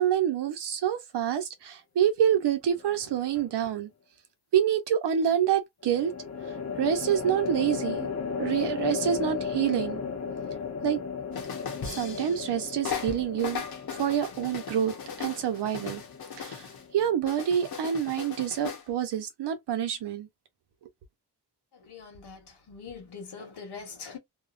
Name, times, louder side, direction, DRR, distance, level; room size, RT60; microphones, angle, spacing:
voice 1, 0.0-3.9 4.5-6.1 6.8-8.1 8.4-10.0 10.8-11.0 11.8-13.6 13.9-16.0 16.4-16.7 16.9-20.3, right 9 dB, 85° right, 0.8 m, -27 dB
sound 1, 2.7-3.3 5.8-17.2, left 6 dB, 40° left, 0.8 m, -35 dB
sound 2, 11.3-12.5 12.8-16.8 17.3-18.8, left 6 dB, 65° left, 1.0 m, -38 dB
voice 2, 21.9-22.4 22.7-24.2, left 5 dB, 80° left, 1.4 m, -42 dB
2.9 x 2.2 x 2.5 m
cardioid pair, 90°, 40 cm